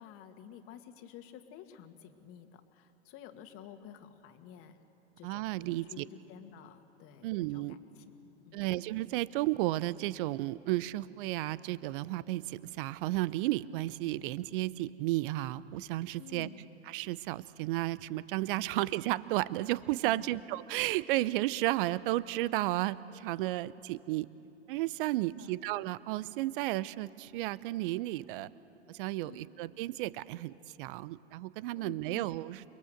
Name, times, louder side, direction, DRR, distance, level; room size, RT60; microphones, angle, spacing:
voice 1, 0.0-4.8 5.2-8.6 16.2-16.7 18.6-18.7 20.0-20.4 25.2-25.6 29.2-29.5 31.8-32.3, left 9 dB, 40° left, 7 dB, 2.0 m, -51 dB
voice 2, 5.2-6.0 7.2-7.8 8.5-16.5 16.9-24.3 24.7-28.5 28.9-32.6, right 17 dB, 50° right, 18 dB, 0.8 m, -33 dB
29.0 x 21.5 x 7.9 m, 3.0 s
hypercardioid pair, 100°, 34 cm